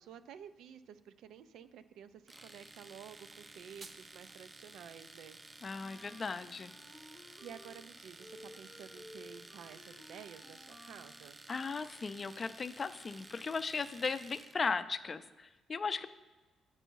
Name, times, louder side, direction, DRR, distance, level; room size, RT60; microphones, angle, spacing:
voice 1, 0.0-5.4 7.4-11.4, right 8 dB, 80° right, 11 dB, 0.4 m, -52 dB
Domestic sounds home sounds, 2.3-14.6, right 2 dB, 20° right, 0.4 m, -54 dB
sound 1, 3.3-4.3, right 3 dB, 50° right, 0.8 m, -55 dB
voice 2, 5.6-6.7 11.5-16.1, left 4 dB, 35° left, 11 dB, 0.4 m, -37 dB
Wind instrument woodwind instrument, 5.7-7.9 8.2-11.3, left 1 dB, 15° left, 0.8 m, -56 dB
8.0 x 5.3 x 4.6 m, 1.2 s
cardioid pair, 90°, 0 cm